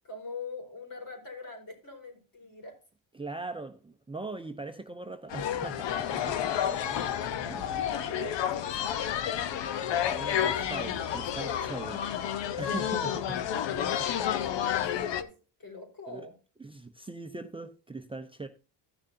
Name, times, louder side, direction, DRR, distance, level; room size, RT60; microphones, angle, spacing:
voice 1, 0.0-2.8 7.9-9.2 13.6-15.3 15.6-16.3, left 2 dB, 50° left, 5.0 m, -43 dB
voice 2, 3.1-7.9 10.1-12.0 12.6-13.4 16.1-16.2 16.6-18.5, right 3 dB, 10° right, 0.7 m, -41 dB
sound 1, 5.3-15.2, left 9 dB, 80° left, 0.9 m, -30 dB
15.5 x 6.5 x 2.7 m
cardioid pair, 100°, 42 cm